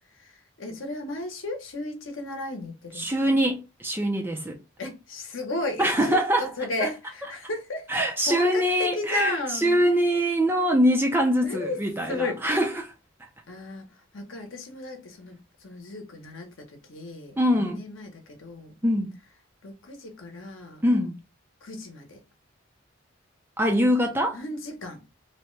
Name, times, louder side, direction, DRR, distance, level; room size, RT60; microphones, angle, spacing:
voice 1, 0.2-3.4 4.8-9.9 11.4-11.8 12.1-12.4 13.5-13.9 14.1-18.7 19.6-20.8 21.6-22.2 24.3-25.0, left 2 dB, 75° left, 0.8 m, -34 dB
voice 2, 3.0-4.6 5.8-6.5 7.9-12.9 17.4-17.8 18.8-19.1 20.8-21.1 23.6-24.4, equal, 10° right, 0.4 m, -23 dB
2.8 x 2.1 x 3.0 m
head